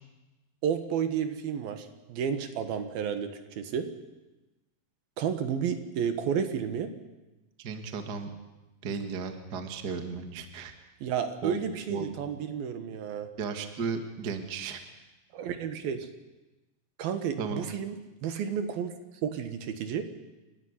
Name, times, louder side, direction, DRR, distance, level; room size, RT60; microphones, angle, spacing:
voice 1, 0.6-3.9 5.2-6.9 11.0-13.3 15.3-16.1 17.0-18.9 19.2-20.1, right 8 dB, 70° right, 9 dB, 3.2 m, -31 dB
voice 2, 7.6-8.3 8.8-10.7 11.4-11.6 11.9-12.2 13.4-14.8 17.4-17.7, right 5 dB, 45° right, 7 dB, 1.4 m, -34 dB
30.0 x 12.5 x 9.7 m, 1.1 s
omnidirectional pair, 4.6 m